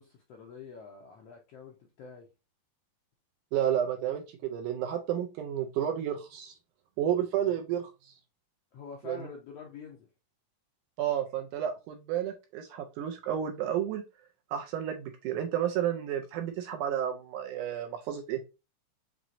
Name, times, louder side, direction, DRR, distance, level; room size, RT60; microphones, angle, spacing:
voice 1, 0.0-2.3 8.7-10.1, left 5 dB, 80° left, 1.4 m, -46 dB
voice 2, 3.5-6.5 7.0-8.1 9.1-9.2 11.0-14.0 14.5-18.4, right 10 dB, 80° right, 1.9 m, -31 dB
6.0 x 3.0 x 2.5 m
omnidirectional pair, 3.9 m